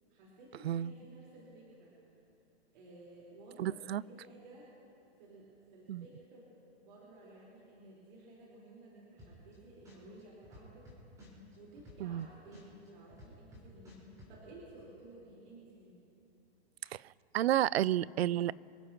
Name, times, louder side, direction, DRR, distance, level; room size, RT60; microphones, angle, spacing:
voice 1, 0.1-1.9 2.7-4.7 5.2-6.5 6.8-10.9 11.2-11.3 11.5-16.0, right 2 dB, 50° right, -6 dB, 4.4 m, -55 dB
voice 2, 3.6-4.0 5.9-6.1 12.0-12.3 16.9-17.0 17.3-18.5, right 12 dB, 70° right, 23 dB, 0.5 m, -31 dB
sound 1, 9.2-9.5 9.8-12.2 12.5-14.3, left 1 dB, 10° right, 4.8 m, -54 dB
27.5 x 15.5 x 3.0 m, 2.8 s
hypercardioid pair, 170°, 33 cm